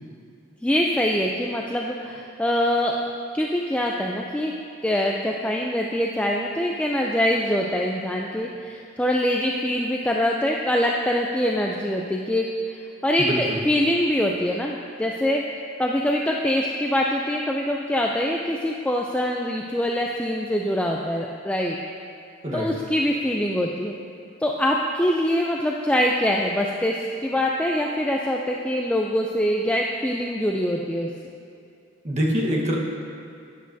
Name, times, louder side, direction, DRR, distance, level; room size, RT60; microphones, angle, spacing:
voice 1, 0.6-4.5 4.8-15.4 15.8-21.8 22.5-24.0 24.4-31.1, equal, 5° left, -1 dB, 0.4 m, -24 dB
voice 2, 13.2-13.6 22.4-22.7 32.0-32.7, equal, 35° right, -2 dB, 1.3 m, -24 dB
12.5 x 10.0 x 2.7 m, 2.5 s
head